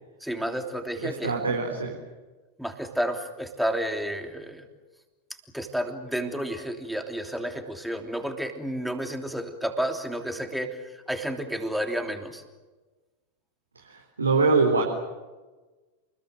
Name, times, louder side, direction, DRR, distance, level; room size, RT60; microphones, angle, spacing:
voice 1, 0.2-1.3 2.6-4.7 5.5-12.4, equal, ahead, 5 dB, 3.2 m, -31 dB
voice 2, 1.0-2.0 13.8-14.8, right 4 dB, 75° right, 0 dB, 3.8 m, -24 dB
29.5 x 21.5 x 7.9 m, 1.2 s
figure-of-eight pair, 90°, 0 cm